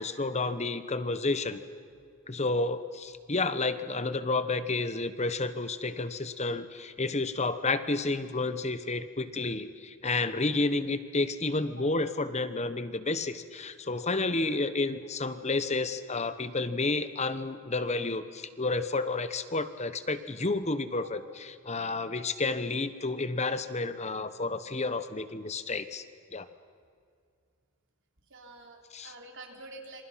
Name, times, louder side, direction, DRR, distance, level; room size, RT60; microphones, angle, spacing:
voice 1, 0.0-1.6 2.3-26.0 26.3-26.5 28.9-29.1, left 3 dB, 30° left, 12 dB, 1.1 m, -31 dB
voice 2, 28.3-30.0, right 2 dB, 55° right, 2 dB, 3.7 m, -47 dB
27.0 x 27.0 x 5.9 m, 2.3 s
head